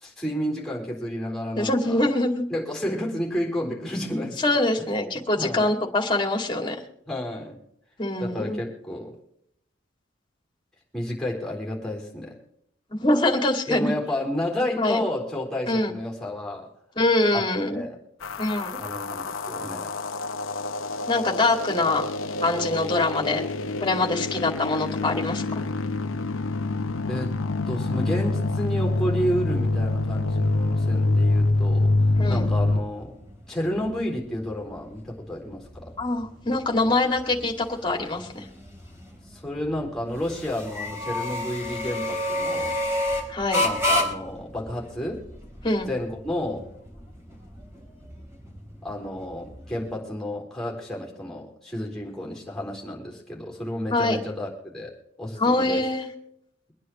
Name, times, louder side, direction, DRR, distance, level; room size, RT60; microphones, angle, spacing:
voice 1, 0.0-2.1 2.5-5.7 7.1-7.6 8.2-9.1 10.9-12.4 13.7-16.7 17.3-18.0 18.8-19.9 27.1-27.3 27.7-31.9 32.3-33.1 33.5-35.9 39.3-42.8 43.6-45.2 45.9-46.7 48.8-54.9 55.2-55.9, left 1 dB, 5° left, -1 dB, 3.9 m, -31 dB
voice 2, 1.6-2.4 4.4-6.9 8.0-8.6 12.9-13.9 14.8-15.0 15.7-15.9 17.0-17.8 18.4-18.8 21.1-22.1 22.4-23.4 23.8-25.4 32.2-32.5 36.0-38.4 43.3-43.6 45.6-45.9 53.9-54.2 55.4-56.1, left 2 dB, 25° left, 1 dB, 2.4 m, -24 dB
sound 1, 18.2-32.8, left 2 dB, 85° left, 0.8 m, -26 dB
sound 2, 32.8-50.0, left 1 dB, 15° right, 3.9 m, -32 dB
24.5 x 9.9 x 3.1 m, 0.74 s
head